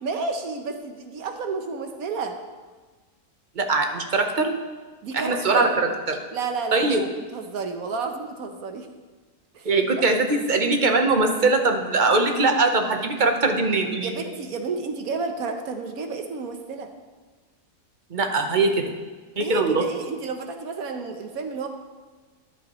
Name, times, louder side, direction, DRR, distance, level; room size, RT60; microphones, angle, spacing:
voice 1, 0.0-2.4 5.0-5.7 6.3-8.9 9.5-9.7 9.9-10.0 14.0-16.9 19.4-21.7, right 4 dB, 70° right, 5 dB, 1.3 m, -31 dB
voice 2, 3.6-4.6 5.1-6.2 6.7-7.0 9.6-14.1 18.1-18.8 19.4-19.8, right 3 dB, 35° right, 4 dB, 0.9 m, -21 dB
13.5 x 10.5 x 3.1 m, 1.4 s
omnidirectional pair, 1.6 m